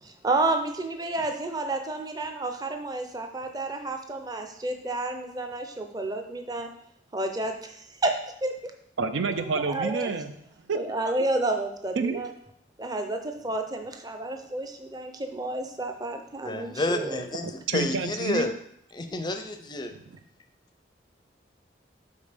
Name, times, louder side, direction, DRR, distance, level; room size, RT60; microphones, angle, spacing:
voice 1, 0.0-6.7 7.1-8.2 8.4-8.5 9.5-10.1 10.7-12.3 12.8-17.2, right 2 dB, 20° right, 5 dB, 0.6 m, -30 dB
voice 2, 9.0-10.3 10.7-10.8 12.0-12.2 17.7-18.5 19.9-20.2, right 4 dB, 85° right, 9 dB, 0.5 m, -28 dB
voice 3, 16.4-18.5 18.9-19.9, left 2 dB, 25° left, 7 dB, 0.4 m, -30 dB
5.3 x 4.1 x 5.1 m, 0.70 s
head